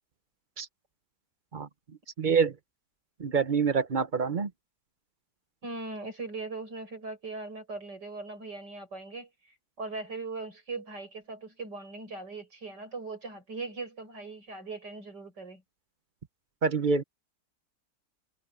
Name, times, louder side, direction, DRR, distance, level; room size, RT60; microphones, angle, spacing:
voice 1, 2.2-2.5 3.2-4.5 16.6-17.0, right 5 dB, 35° right, 0.8 m, -26 dB
voice 2, 5.6-9.3 9.8-15.6, right 3 dB, 80° right, 8.7 m, -39 dB
omnidirectional pair, 1.8 m